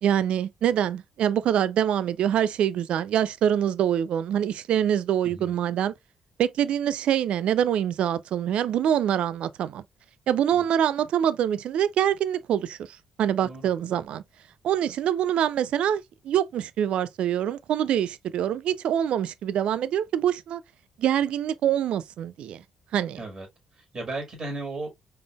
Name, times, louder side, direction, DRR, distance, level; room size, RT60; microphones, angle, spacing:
voice 1, 0.0-5.9 6.4-9.8 10.3-12.8 13.2-14.2 14.6-20.6 21.0-22.6 22.9-23.2, right 10 dB, 60° right, 0.4 m, -25 dB
voice 2, 23.2-23.5 23.7-24.9, right 2 dB, 40° right, 1.8 m, -35 dB
4.9 x 3.5 x 2.3 m
figure-of-eight pair, 45°, 2 cm